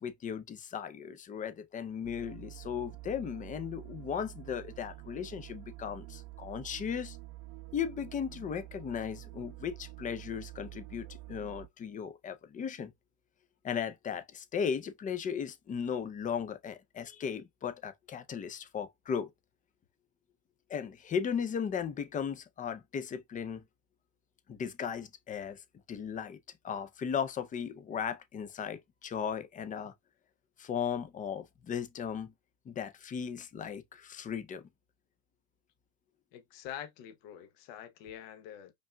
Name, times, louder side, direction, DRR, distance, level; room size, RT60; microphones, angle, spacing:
voice 1, 0.0-7.2 7.7-12.9 13.6-19.3 20.7-23.6 24.5-25.6 25.9-26.4 26.6-29.9 30.6-32.3 32.7-34.6, left 7 dB, 20° left, 0.4 m, -36 dB
sound 1, 2.0-11.7, right 18 dB, 45° right, 0.5 m, -48 dB
voice 2, 36.3-38.7, left 10 dB, 65° left, 0.9 m, -45 dB
5.2 x 2.6 x 2.2 m
supercardioid pair, 115°, 41 cm